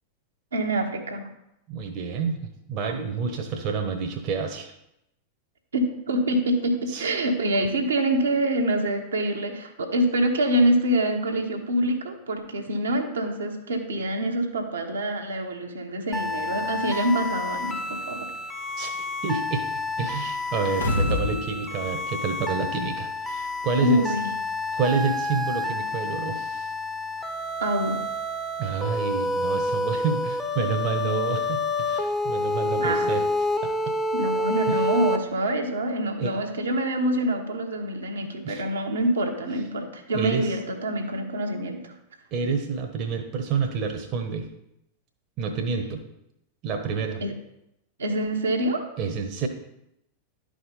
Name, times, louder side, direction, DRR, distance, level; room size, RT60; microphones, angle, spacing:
voice 1, 0.5-1.3 5.7-18.3 23.8-24.3 27.6-28.0 32.8-33.2 34.1-41.9 47.2-47.3 48.0-48.8, right 1 dB, 70° right, 1 dB, 1.1 m, -26 dB
voice 2, 1.7-4.7 6.9-7.1 16.9-17.1 18.8-19.7 20.0-24.0 24.7-26.7 28.6-33.7 34.7-34.8 36.2-36.3 38.4-38.7 40.1-40.5 42.3-44.5 45.4-46.0 46.6-47.2 49.0-49.5, right 5 dB, 40° right, 5 dB, 1.0 m, -29 dB
sound 1, 16.1-35.2, left 2 dB, 5° left, 0.9 m, -29 dB
sound 2, 20.6-21.4 21.8-21.9, left 2 dB, 75° left, 1.2 m, -25 dB
11.0 x 5.0 x 4.1 m, 0.83 s
figure-of-eight pair, 90°, 0 cm